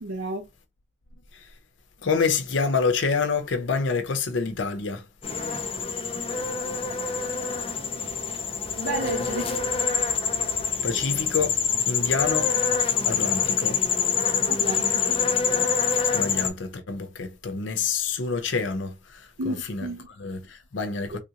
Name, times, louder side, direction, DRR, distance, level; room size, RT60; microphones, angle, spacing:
voice 1, 0.0-0.5 8.8-9.5 14.5-15.2 19.4-20.1 21.1-21.2, right 2 dB, 75° right, 0.6 m, -32 dB
voice 2, 2.0-5.1 10.8-11.6 11.9-12.5 13.0-13.8 16.1-21.2, left 5 dB, 75° left, 0.6 m, -27 dB
sound 1, 5.2-16.5, left 6 dB, 30° left, 0.4 m, -25 dB
3.6 x 2.5 x 2.8 m
head